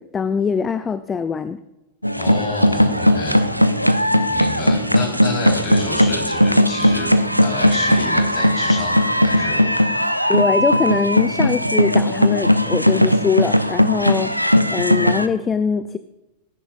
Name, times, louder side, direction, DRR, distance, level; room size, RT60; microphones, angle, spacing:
voice 1, 0.0-1.6 10.3-16.0, left 6 dB, 20° left, 13 dB, 0.4 m, -22 dB
sound 1, 2.0-15.3, equal, 90° left, 0.5 m, -18 dB
voice 2, 2.2-3.4 4.3-7.1 7.4-10.1 14.3-14.4, left 3 dB, 40° left, 1 dB, 3.9 m, -30 dB
20.0 x 10.0 x 2.5 m, 1.0 s
figure-of-eight pair, 90°, 0 cm